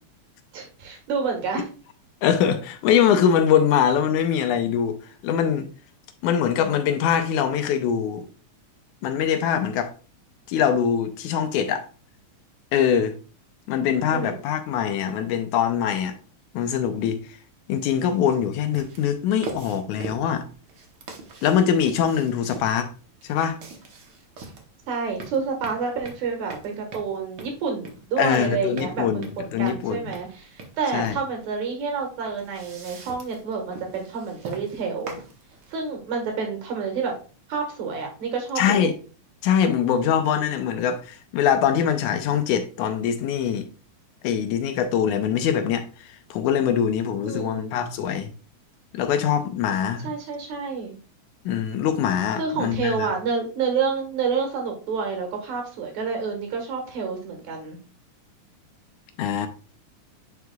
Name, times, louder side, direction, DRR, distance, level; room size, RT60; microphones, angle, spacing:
voice 1, 0.5-1.7 14.1-14.4 24.9-35.2 35.7-37.1 37.5-38.9 47.3-47.7 50.0-51.0 52.4-57.8, right 5 dB, 70° right, 2.9 m, -28 dB
voice 2, 2.2-5.7 6.2-8.3 9.0-9.9 10.5-11.9 12.7-13.1 13.7-16.2 16.5-17.2 17.7-20.5 21.4-22.9 23.2-23.6 28.2-30.0 30.9-31.2 38.6-38.9 39.4-43.7 44.2-48.3 48.9-50.1 51.5-53.1 59.2-59.5, left 8 dB, 80° left, 2.1 m, -23 dB
sound 1, 17.9-35.9, right 3 dB, 90° right, 0.9 m, -43 dB
9.5 x 4.6 x 2.3 m
omnidirectional pair, 3.6 m